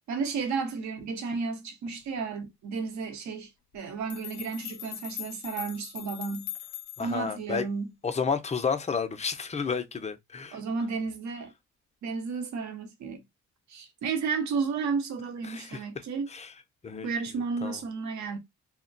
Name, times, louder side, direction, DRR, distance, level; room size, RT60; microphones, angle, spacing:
voice 1, 0.1-6.5 7.0-7.9 10.5-11.5 12.0-13.2 13.7-16.3 17.0-18.4, right 5 dB, 65° right, 0.9 m, -32 dB
sound 1, 3.7-3.8 4.1-7.2, left 13 dB, 85° left, 0.5 m, -40 dB
voice 2, 7.0-7.7 8.0-10.6 15.5-15.8 16.3-16.5 16.8-17.1 17.6-17.8, left 5 dB, 25° left, 0.5 m, -31 dB
2.3 x 2.1 x 3.7 m
cardioid pair, 90°, 30 cm